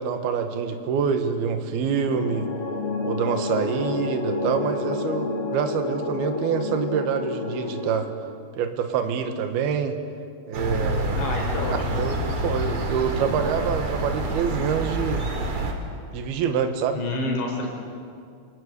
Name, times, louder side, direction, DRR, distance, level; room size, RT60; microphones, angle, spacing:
voice 1, 0.0-2.5 3.0-8.1 8.6-10.0 10.5-11.3 11.7-15.3 16.1-17.0, right 6 dB, 65° right, 7 dB, 3.3 m, -26 dB
sound 1, 2.0-8.0, left 3 dB, 50° left, 2.9 m, -29 dB
sound 2, 10.5-15.7, right 1 dB, 45° right, 3.6 m, -27 dB
voice 2, 11.2-12.0 16.9-17.7, left 2 dB, 90° left, 1 dB, 6.8 m, -28 dB
29.0 x 21.0 x 8.4 m, 2.3 s
omnidirectional pair, 5.0 m